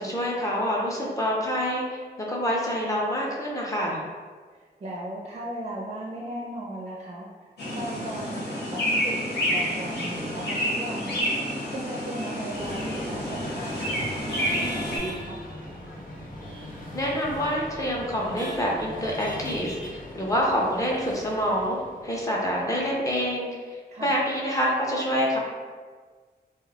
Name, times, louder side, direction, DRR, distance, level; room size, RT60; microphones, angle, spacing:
voice 1, 0.0-4.0 16.9-23.5 24.0-25.4, equal, 20° left, -3 dB, 0.5 m, -27 dB
voice 2, 4.5-7.3 7.7-9.2 9.5-11.2 11.7-15.4 23.9-24.1, right 1 dB, 45° right, -4 dB, 0.4 m, -36 dB
sound 1, 7.6-15.0, equal, 90° left, 0.9 m, -29 dB
sound 2, 12.5-22.9, left 1 dB, 55° left, 0.7 m, -39 dB
2.3 x 2.1 x 3.8 m, 1.5 s
wide cardioid pair, 155°, 17 cm